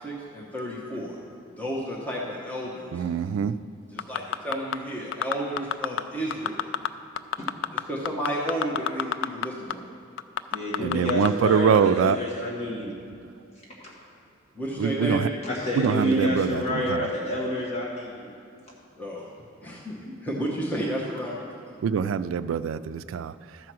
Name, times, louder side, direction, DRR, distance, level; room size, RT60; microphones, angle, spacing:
voice 1, 0.0-1.2 1.6-3.0 3.9-6.7 7.7-9.8 14.5-15.3 19.0-19.3 19.6-21.4, right 1 dB, 10° left, -5 dB, 1.0 m, -32 dB
voice 2, 2.9-3.6 10.8-12.2 14.8-15.3 15.7-17.1 21.8-23.6, right 7 dB, 80° right, 13 dB, 0.3 m, -24 dB
sound 1, 4.0-4.8 5.1-6.0 6.3-6.9 7.2-9.5 9.7-9.8 10.2-11.3 11.7-11.8, left 9 dB, 65° left, 0.3 m, -27 dB
voice 3, 10.5-12.9 13.8-13.9 15.4-18.3, left 1 dB, 35° left, -5 dB, 1.6 m, -28 dB
13.5 x 4.7 x 6.1 m, 2.4 s
head